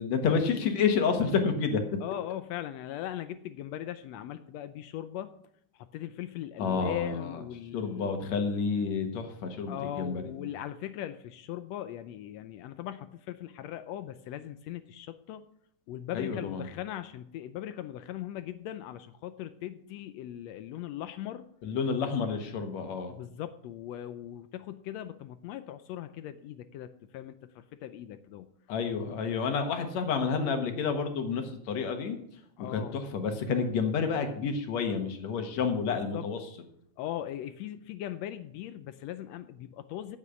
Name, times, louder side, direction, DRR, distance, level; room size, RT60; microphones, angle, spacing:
voice 1, 0.0-1.8 6.6-7.4 7.7-10.5 16.1-16.6 21.6-23.1 28.7-32.2 32.7-36.4, left 5 dB, 65° left, 6 dB, 2.5 m, -29 dB
voice 2, 2.0-5.3 5.7-8.1 9.7-15.4 15.9-21.4 22.0-22.1 23.1-28.5 32.6-33.0 35.9-36.2 37.0-40.2, left 12 dB, 80° left, 11 dB, 1.5 m, -39 dB
8.8 x 8.5 x 8.1 m, 0.72 s
omnidirectional pair, 3.5 m